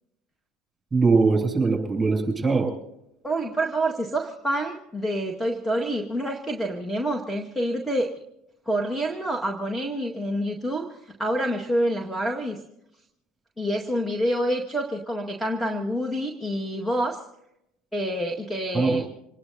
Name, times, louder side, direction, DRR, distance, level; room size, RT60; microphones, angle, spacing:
voice 1, 0.9-2.7 18.7-19.0, right 4 dB, 15° right, 1 dB, 7.1 m, -21 dB
voice 2, 3.2-8.1 8.7-12.6 13.6-17.2 17.9-19.1, right 1 dB, 5° left, 3 dB, 1.9 m, -27 dB
27.0 x 19.5 x 2.8 m, 0.81 s
hypercardioid pair, 75°, 0 cm